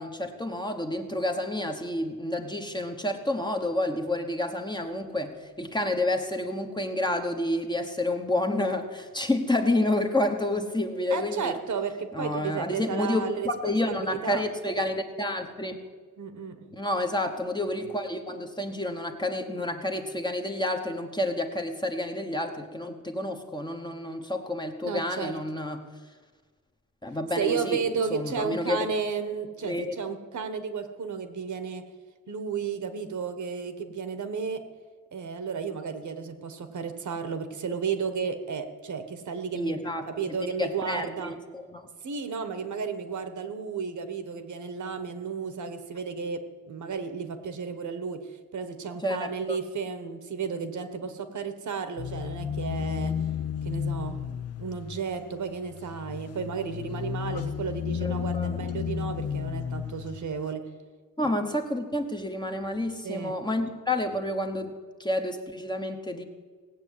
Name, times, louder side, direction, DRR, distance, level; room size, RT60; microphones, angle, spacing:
voice 1, 0.0-11.5 12.1-15.8 16.7-25.8 27.0-27.8 28.1-28.9 29.6-29.9 39.5-41.9 49.0-49.6 57.3-57.4 58.0-58.5 61.2-66.2, left 1 dB, 15° left, 4 dB, 1.0 m, -29 dB
voice 2, 11.1-14.4 16.2-16.9 24.8-25.3 27.4-31.8 32.3-34.6 35.1-39.8 40.1-41.3 42.0-53.2 53.6-60.7 63.0-63.3, right 6 dB, 60° right, 10 dB, 1.3 m, -33 dB
sound 1, 52.0-60.3, left 8 dB, 50° left, 0.5 m, -33 dB
18.0 x 8.4 x 8.3 m, 1.5 s
wide cardioid pair, 170°, 33 cm